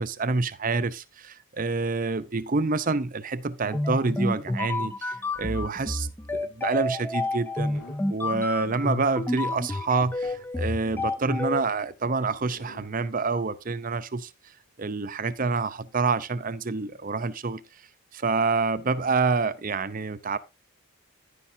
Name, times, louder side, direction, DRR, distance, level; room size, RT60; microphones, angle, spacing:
voice 1, 0.0-7.8 8.1-14.3 14.8-17.6 18.1-20.4, right 4 dB, 40° right, 0.6 m, -27 dB
sound 1, 3.7-11.6, left 1 dB, 10° left, 0.5 m, -29 dB
sound 2, 5.3-5.7 6.7-6.9 7.5-8.1 8.9-9.2 9.7-9.8 10.0-10.6 11.3-11.5 12.3-12.9 13.5-13.6, left 1 dB, 90° left, 4.9 m, -50 dB
10.5 x 10.0 x 2.7 m
head